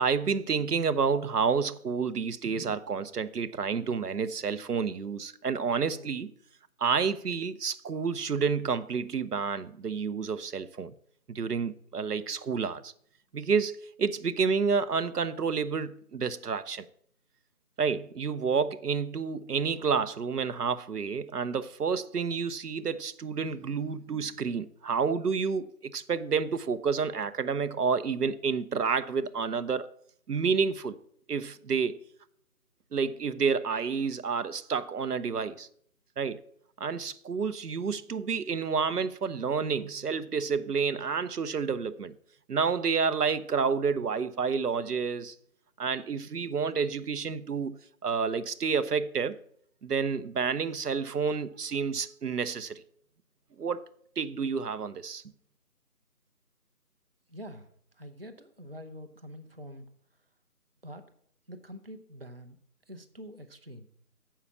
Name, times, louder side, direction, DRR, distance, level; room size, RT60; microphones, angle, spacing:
voice 1, 0.0-6.3 6.8-10.9 11.3-12.9 13.3-16.9 17.8-30.0 30.3-31.0 31.3-32.0 32.9-35.7 36.2-36.4 36.8-42.1 42.5-45.3 45.8-49.4 49.8-52.8 53.6-53.8 54.2-55.2, right 5 dB, 80° right, 0.7 m, -29 dB
voice 2, 5.9-6.2 57.3-57.7 58.0-59.8 60.8-61.0 61.5-62.6 62.9-63.9, equal, 40° right, 0.6 m, -45 dB
7.3 x 5.6 x 7.1 m
figure-of-eight pair, 170°, 46 cm